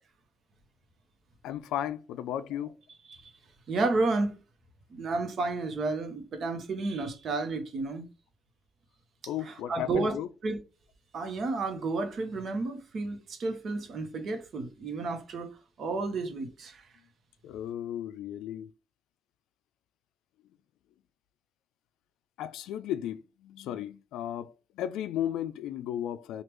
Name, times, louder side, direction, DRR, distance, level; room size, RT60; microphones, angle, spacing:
voice 1, 1.4-2.7 9.3-10.3 17.4-18.7 22.4-26.4, left 11 dB, 90° left, 0.3 m, -35 dB
voice 2, 3.7-4.4 4.9-8.1 9.5-10.2 10.4-10.6 11.1-16.9, right 3 dB, 60° right, 0.9 m, -31 dB
3.3 x 2.4 x 3.0 m
cardioid pair, 90°, 0 cm